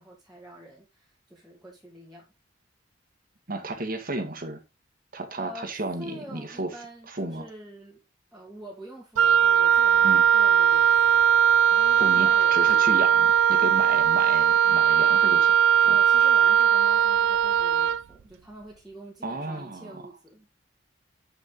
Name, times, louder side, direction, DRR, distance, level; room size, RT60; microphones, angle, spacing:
voice 1, 0.0-2.3 5.4-8.0 8.3-11.2 11.7-12.9 15.9-20.5, right 1 dB, ahead, 2.3 m, -45 dB
voice 2, 3.5-4.6 5.1-6.7 7.1-7.5 10.0-10.2 12.0-15.5 15.8-16.0 19.2-20.1, right 2 dB, 50° right, 1.9 m, -33 dB
Wind instrument woodwind instrument, 9.2-18.0, right 8 dB, 85° right, 0.4 m, -19 dB
9.7 x 5.2 x 3.9 m
head